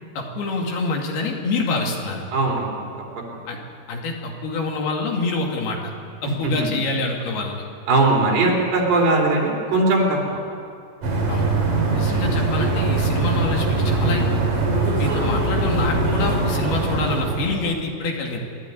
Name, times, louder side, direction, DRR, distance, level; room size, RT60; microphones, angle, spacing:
voice 1, 0.2-2.2 3.5-3.6 3.9-5.9 6.2-7.7 11.3-11.4 11.9-14.4 15.0-18.4, left 3 dB, 75° left, 1 dB, 4.3 m, -26 dB
voice 2, 2.3-2.8 6.4-6.7 7.9-10.4 15.0-15.3, right 2 dB, 85° right, -1 dB, 5.7 m, -20 dB
sound 1, 11.0-17.6, right 2 dB, 55° right, 4.8 m, -21 dB
26.5 x 12.0 x 9.7 m, 2.4 s
omnidirectional pair, 4.6 m